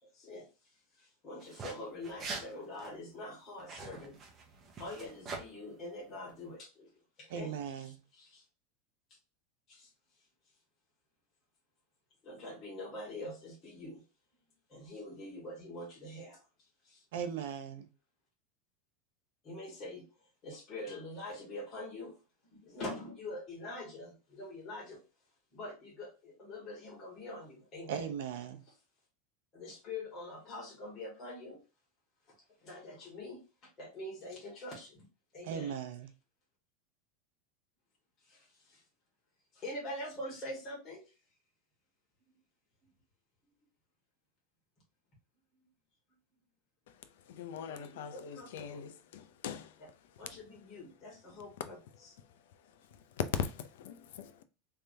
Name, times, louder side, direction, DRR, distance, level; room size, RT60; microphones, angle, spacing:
voice 1, 0.0-4.2 4.8-6.9 7.2-8.4 9.7-9.9 12.2-14.0 14.7-16.4 16.8-17.0 19.4-22.2 22.5-25.0 25.5-28.1 28.6-28.7 29.5-31.6 32.3-32.4 32.6-35.0 35.3-35.7 38.2-38.8 39.5-41.0 45.5-45.7 47.5-48.9 49.8-49.9 50.2-52.1, left 1 dB, 30° left, 2.1 m, -45 dB
sound 1, 1.4-1.7 2.0-2.5 2.7-2.9 3.6-5.4, right 4 dB, 25° right, 0.9 m, -43 dB
voice 2, 7.3-7.9 17.1-17.9 27.9-28.6 35.4-36.1, right 8 dB, 75° right, 0.6 m, -38 dB
voice 3, 47.3-49.8 53.2-54.4, left 8 dB, 80° left, 0.6 m, -39 dB
3.4 x 3.3 x 2.8 m
supercardioid pair, 160°, 0 cm